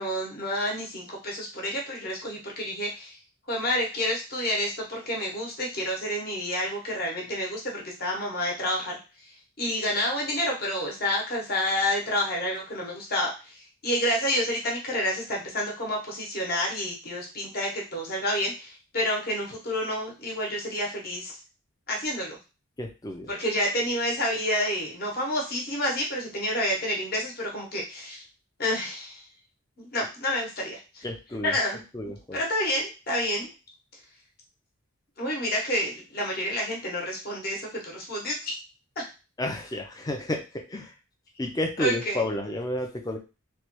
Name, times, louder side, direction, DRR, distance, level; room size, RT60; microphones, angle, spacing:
voice 1, 0.0-3.2 3.5-9.0 9.6-21.3 21.9-22.4 23.3-28.2 28.6-29.2 29.8-31.1 31.4-33.5 35.2-38.5 39.0-39.1 41.8-42.3, left 1 dB, 45° left, -2 dB, 1.0 m, -29 dB
voice 2, 22.8-23.3 31.0-31.5 31.9-32.4 39.4-40.4 40.7-40.9 41.4-43.2, left 1 dB, 15° left, 3 dB, 0.4 m, -31 dB
3.1 x 2.2 x 3.0 m, 0.31 s
head